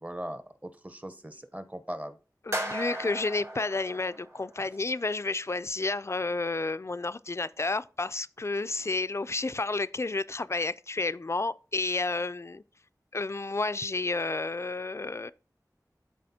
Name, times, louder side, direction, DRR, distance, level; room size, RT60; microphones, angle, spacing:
voice 1, 0.0-2.2, equal, 20° right, 0.7 m, -39 dB
voice 2, 2.4-12.6 13.1-15.3, left 3 dB, 40° left, 0.3 m, -31 dB
sound 1, 2.5-4.7, right 1 dB, 45° right, 3.2 m, -36 dB
12.0 x 4.1 x 2.8 m
wide cardioid pair, 50°, 7 cm